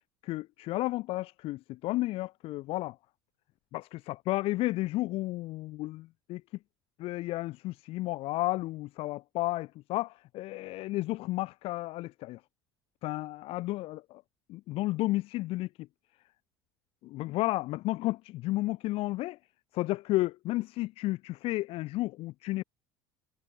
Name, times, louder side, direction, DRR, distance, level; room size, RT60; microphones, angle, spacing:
voice 1, 0.2-3.0 3.7-6.4 7.0-12.4 13.0-14.2 14.5-15.9 17.0-19.4 19.7-22.6, left 18 dB, 65° left, 4.3 m, -32 dB
supercardioid pair, 105°, 11 cm